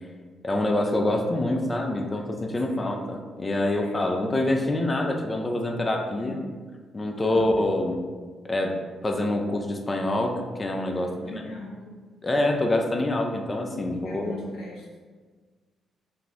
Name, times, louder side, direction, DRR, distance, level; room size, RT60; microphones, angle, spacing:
voice 1, 0.4-6.4 6.9-8.0 8.4-11.4 12.2-14.3, left 1 dB, 30° left, 2 dB, 0.4 m, -26 dB
voice 2, 2.6-3.0 3.7-4.1 6.2-6.5 7.1-7.6 10.9-12.0 13.9-14.9, left 2 dB, 70° left, -3 dB, 0.7 m, -41 dB
2.4 x 2.0 x 3.6 m, 1.5 s
hypercardioid pair, 45°, 0 cm